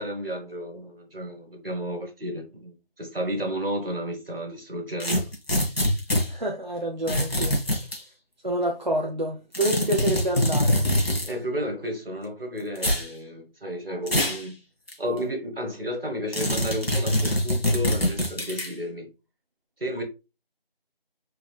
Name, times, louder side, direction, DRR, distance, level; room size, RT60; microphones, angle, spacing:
voice 1, 0.0-5.2 11.2-14.6 15.0-19.1 19.8-20.0, equal, 75° right, 1.6 m, -32 dB
sound 1, 5.0-6.3 7.1-8.0 9.5-11.3 12.8-13.1 14.1-14.4 14.9-15.0 16.3-18.7, left 1 dB, 90° left, 1.8 m, -24 dB
voice 2, 6.3-7.6 8.4-10.9, right 1 dB, 50° right, 0.6 m, -28 dB
4.7 x 2.4 x 3.3 m
figure-of-eight pair, 175°, 30 cm